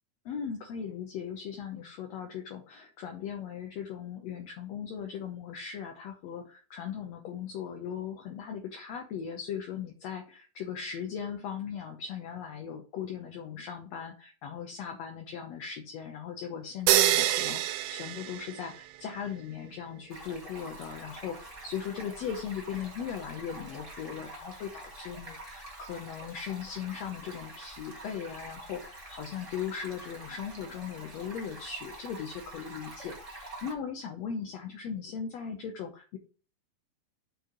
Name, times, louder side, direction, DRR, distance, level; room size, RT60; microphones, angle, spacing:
voice 1, 0.2-36.2, left 7 dB, 70° left, 3 dB, 1.6 m, -38 dB
sound 1, 16.9-19.0, right 14 dB, 80° right, 2.1 m, -26 dB
Stream, 20.1-33.7, right 2 dB, 15° right, 1.1 m, -46 dB
6.8 x 4.8 x 5.1 m, 0.38 s
omnidirectional pair, 4.1 m